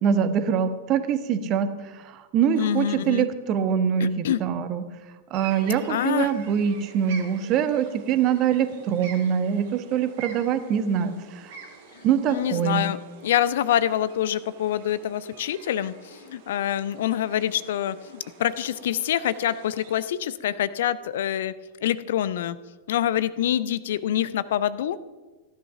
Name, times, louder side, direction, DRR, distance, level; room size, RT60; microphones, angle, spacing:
voice 1, 0.0-4.8 5.3-11.5 12.0-12.9, right 8 dB, 35° right, 10 dB, 1.3 m, -24 dB
voice 2, 2.6-3.3 4.0-4.4 5.9-6.3 12.3-21.5 21.8-22.6 22.9-25.0, left 11 dB, 60° left, 17 dB, 0.6 m, -26 dB
sound 1, 5.3-20.1, right 6 dB, 55° right, 2.2 m, -46 dB
15.5 x 11.0 x 5.8 m, 1.2 s
figure-of-eight pair, 90°, 0 cm